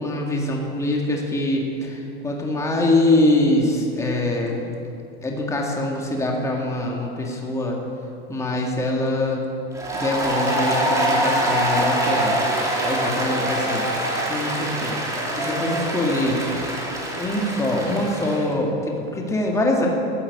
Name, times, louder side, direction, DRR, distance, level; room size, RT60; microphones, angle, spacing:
voice 1, 0.0-4.6 5.2-7.8 8.3-9.4 9.9-12.4 12.8-13.8 14.3-15.0 15.4-16.4 17.2-19.9, left 1 dB, 10° left, -1 dB, 1.9 m, -23 dB
Applause, 9.7-18.4, right 1 dB, 10° right, 2.6 m, -24 dB
14.5 x 8.7 x 8.1 m, 2.6 s
supercardioid pair, 145°, 32 cm